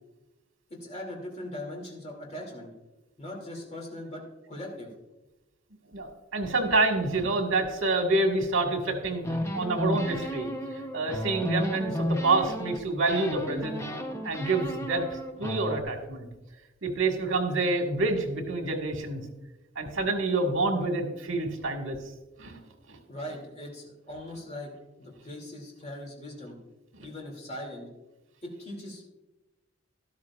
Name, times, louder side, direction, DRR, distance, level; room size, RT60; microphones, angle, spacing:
voice 1, 0.7-2.7 3.2-4.9 23.1-24.7 25.0-26.6 27.0-27.9 28.4-29.1, left 1 dB, 35° left, 0 dB, 2.6 m, -40 dB
voice 2, 5.9-9.2 9.5-10.5 10.9-13.8 14.2-16.3 16.8-19.2 19.8-22.0 22.4-22.6 22.9-23.0, right 2 dB, 80° right, 3 dB, 1.7 m, -27 dB
sound 1, 9.2-12.8 13.1-15.8, equal, 15° left, 0.8 m, -33 dB
12.5 x 12.5 x 2.4 m, 1.0 s
head